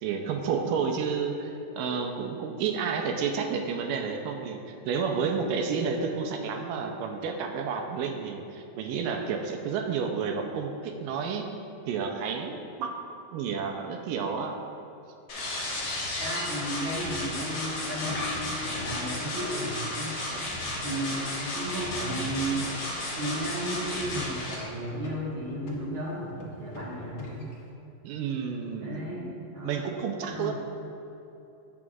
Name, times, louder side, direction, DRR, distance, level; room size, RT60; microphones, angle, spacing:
voice 1, 0.0-1.5 1.8-11.5 11.9-12.9 13.3-14.6 28.0-29.1 29.6-30.5, right 6 dB, 80° right, 4 dB, 2.3 m, -30 dB
sound 1, 15.3-24.5, left 1 dB, 45° left, 2.6 m, -33 dB
voice 2, 16.2-20.2 20.8-27.5 28.8-29.9 30.2-30.5, right 1 dB, 50° right, -5 dB, 1.7 m, -34 dB
sound 2, 17.7-27.7, left 2 dB, 70° left, 1.0 m, -42 dB
17.5 x 6.2 x 2.5 m, 2.9 s
omnidirectional pair, 4.1 m